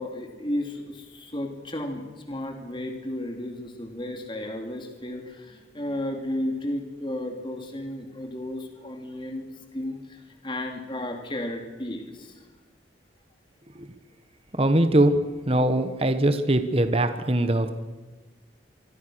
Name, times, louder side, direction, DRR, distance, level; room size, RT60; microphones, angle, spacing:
voice 1, 0.0-12.4, left 1 dB, 25° left, 3 dB, 3.0 m, -33 dB
voice 2, 14.6-15.1 15.5-17.7, right 1 dB, 30° right, 9 dB, 1.3 m, -21 dB
25.5 x 25.0 x 6.4 m, 1.3 s
head